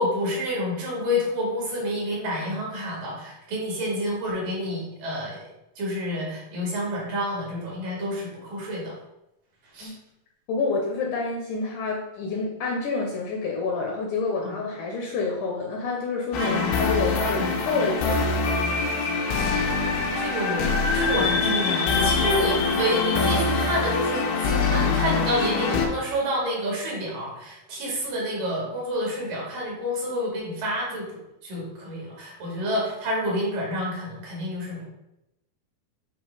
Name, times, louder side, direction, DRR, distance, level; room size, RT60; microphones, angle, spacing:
voice 1, 0.0-5.4 5.8-8.9 9.7-9.9 14.4-14.5 16.4-16.8 17.2-17.8 20.2-20.6 20.9-31.1 31.4-34.8, equal, 65° right, -3 dB, 3.8 m, -29 dB
voice 2, 10.5-18.5, left 4 dB, 70° left, 0 dB, 2.0 m, -28 dB
sound 1, 16.3-25.9, left 4 dB, 90° left, 2.9 m, -24 dB
9.2 x 3.3 x 4.8 m, 0.90 s
omnidirectional pair, 4.4 m